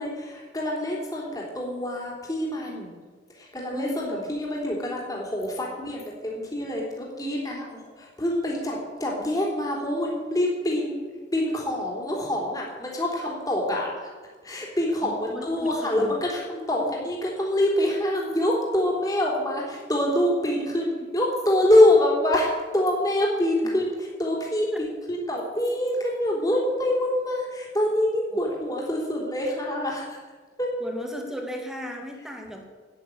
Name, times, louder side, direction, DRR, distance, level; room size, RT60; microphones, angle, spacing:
voice 1, 0.0-2.9 3.4-11.0 11.3-14.1 14.4-30.2 30.6-30.7, left 1 dB, 20° left, -3 dB, 3.4 m, -25 dB
voice 2, 3.7-4.3 15.0-16.2 16.8-17.0 23.6-23.7 24.7-24.8 28.3-28.4 30.8-32.6, equal, 5° right, 2 dB, 2.0 m, -36 dB
11.0 x 9.8 x 8.5 m, 1.4 s
head